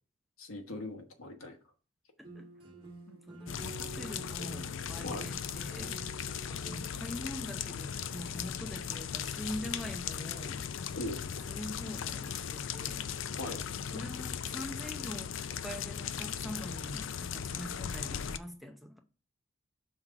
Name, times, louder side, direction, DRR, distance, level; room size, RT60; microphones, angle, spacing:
voice 1, 0.4-1.6 5.0-5.3 10.9-11.2 13.4-13.6, left 2 dB, 85° left, 1.2 m, -39 dB
sound 1, 2.2-7.2, right 3 dB, 25° right, 2.0 m, -49 dB
voice 2, 3.1-6.0 6.4-10.7 11.5-13.1 13.9-19.0, equal, ahead, 0.6 m, -44 dB
sound 2, 3.5-18.4, left 8 dB, 60° left, 0.4 m, -38 dB
5.7 x 3.6 x 5.7 m
head